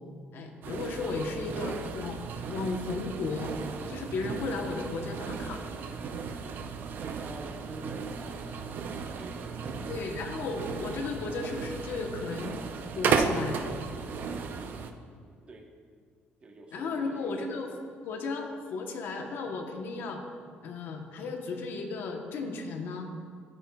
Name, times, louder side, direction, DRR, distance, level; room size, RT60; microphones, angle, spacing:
voice 1, 0.3-2.2 2.5-3.5 3.9-5.6 9.9-12.6 12.9-13.6 16.7-17.7 18.0-20.2 20.6-23.1, left 3 dB, 60° left, 4 dB, 0.9 m, -34 dB
sound 1, 0.6-14.9, right 5 dB, 55° right, 0.5 m, -35 dB
voice 2, 7.1-10.0 15.5-15.7 16.4-17.3, right 2 dB, 30° right, 2 dB, 1.0 m, -48 dB
13.0 x 8.8 x 2.3 m, 2.1 s
cardioid pair, 140°, 4 cm